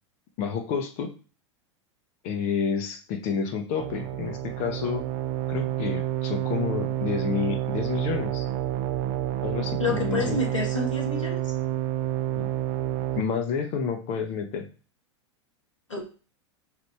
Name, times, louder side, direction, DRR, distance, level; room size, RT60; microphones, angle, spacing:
voice 1, 0.4-1.1 2.2-5.0 5.5-8.5 9.4-10.4 12.3-12.5 13.2-14.7, left 6 dB, 45° left, 6 dB, 1.0 m, -29 dB
sound 1, 3.8-13.2, right 12 dB, 45° right, 0.4 m, -29 dB
voice 2, 9.8-11.5 15.9-16.1, left 3 dB, 85° left, 0 dB, 1.4 m, -29 dB
4.8 x 2.6 x 3.4 m, 0.37 s
figure-of-eight pair, 90°, 16 cm